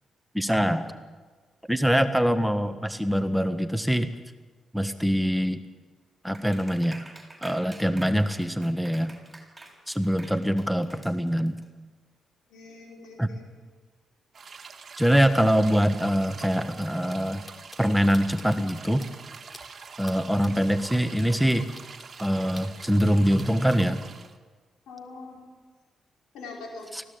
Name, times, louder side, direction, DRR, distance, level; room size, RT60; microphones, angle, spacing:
voice 1, 0.3-0.9 1.7-4.1 4.7-5.6 6.2-7.0 7.4-9.1 9.9-11.5 13.2-13.3 15.0-17.4 17.8-19.1 20.0-21.7 22.2-24.0 26.9-27.0, equal, ahead, 9 dB, 1.4 m, -24 dB
Clapping, 6.3-11.6, right 2 dB, 20° right, 6.7 m, -47 dB
voice 2, 12.5-13.4 24.9-25.4 26.3-26.9, left 3 dB, 80° left, -1 dB, 5.1 m, -42 dB
sound 1, 14.3-24.4, right 5 dB, 50° right, 1.8 m, -45 dB
sound 2, 16.8-16.9 17.1-17.2 17.5-17.8 18.1-18.7 19.0-19.1 19.5-19.6 20.0-20.2 20.4-23.1 23.4-23.8, left 1 dB, 25° left, 4.1 m, -47 dB
20.0 x 15.5 x 8.8 m, 1.4 s
hypercardioid pair, 45°, 0 cm